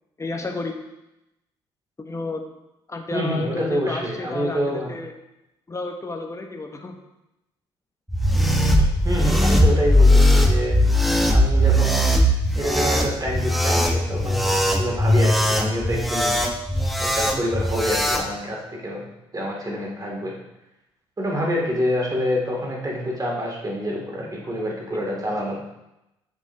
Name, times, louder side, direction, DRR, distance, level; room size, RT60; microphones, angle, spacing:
voice 1, 0.2-0.8 2.0-2.4 2.9-5.1 5.7-7.0 24.4-24.5, left 3 dB, 20° left, 4 dB, 1.0 m, -31 dB
voice 2, 3.1-4.9 8.8-10.8 11.3-12.2 12.6-16.4 17.0-19.0 19.3-20.4 21.2-25.6, equal, 25° right, -2 dB, 2.3 m, -27 dB
sound 1, 8.1-18.2, equal, ahead, 0.9 m, -19 dB
7.6 x 6.2 x 2.7 m, 0.90 s
hypercardioid pair, 50°, 13 cm